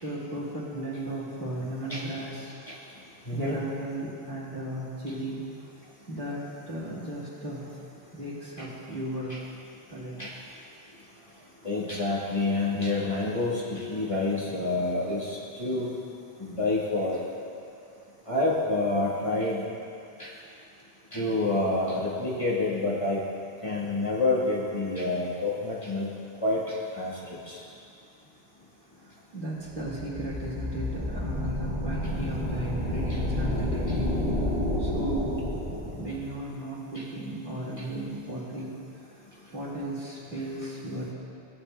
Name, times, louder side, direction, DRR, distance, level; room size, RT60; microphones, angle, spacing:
voice 1, 0.0-2.5 3.3-5.4 6.1-7.7 8.1-9.4 9.9-10.3 29.0-34.1 34.8-35.4 35.9-38.7 39.5-41.1, right 1 dB, 50° right, -7 dB, 2.2 m, -35 dB
voice 2, 3.3-3.6 8.6-8.7 9.3-9.4 10.2-10.3 11.6-15.9 16.4-17.2 18.3-19.6 20.2-20.3 21.1-23.2 23.6-26.1 26.4-27.1 27.5-27.6 36.9-37.0, left 2 dB, 30° left, -6 dB, 1.4 m, -28 dB
sound 1, 29.7-36.2, left 1 dB, 65° left, 2.3 m, -30 dB
16.0 x 8.5 x 2.2 m, 2.5 s
omnidirectional pair, 1.1 m